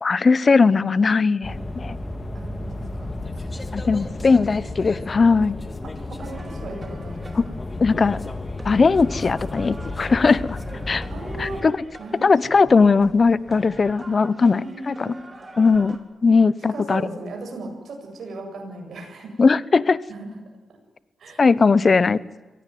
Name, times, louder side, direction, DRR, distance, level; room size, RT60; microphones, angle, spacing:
voice 1, 0.0-2.0 3.7-5.6 7.3-7.5 7.8-8.2 8.6-11.0 11.4-11.8 12.2-14.6 14.9-15.1 15.6-16.0 16.2-17.0 19.4-20.0 21.4-22.2, left 4 dB, 45° left, 18 dB, 1.0 m, -18 dB
sound 1, 1.4-11.6, left 2 dB, 30° left, 3.0 m, -33 dB
voice 2, 2.3-3.4 4.3-4.5 5.8-7.7 11.1-11.7 12.0-12.3 14.6-15.1 16.7-19.3 20.1-20.5 21.2-21.4, right 2 dB, 70° right, 3 dB, 8.0 m, -37 dB
sound 2, 6.2-16.0, right 2 dB, 30° right, 4.1 m, -44 dB
24.0 x 17.5 x 9.5 m, 1.2 s
cardioid pair, 65°, 0 cm